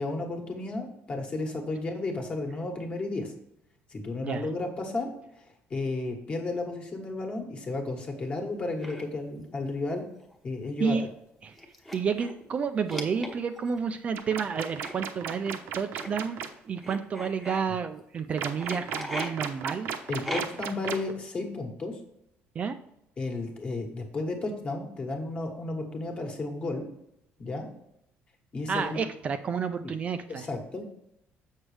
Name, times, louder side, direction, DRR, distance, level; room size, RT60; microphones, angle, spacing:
voice 1, 0.0-3.3 3.9-10.0 10.4-11.0 20.1-22.0 23.2-26.8 27.4-27.7 28.5-29.0 29.8-29.9 30.3-30.8, left 2 dB, 25° left, 3 dB, 1.3 m, -33 dB
sound 1, 8.8-9.0 10.2-10.3 10.7-10.8 11.5-12.4 12.9-13.7 14.8-14.9 16.0-16.1 16.8-17.6 18.6-19.3 20.2-20.7, equal, 5° left, 0.9 m, -37 dB
voice 2, 11.9-16.4 16.6-19.9 22.6-22.8 28.7-30.5, right 6 dB, 30° right, 8 dB, 0.4 m, -30 dB
sound 2, 14.2-16.5 18.4-21.1, right 8 dB, 65° right, 0.8 m, -34 dB
7.3 x 6.2 x 3.3 m, 0.78 s
cardioid pair, 160°, 4 cm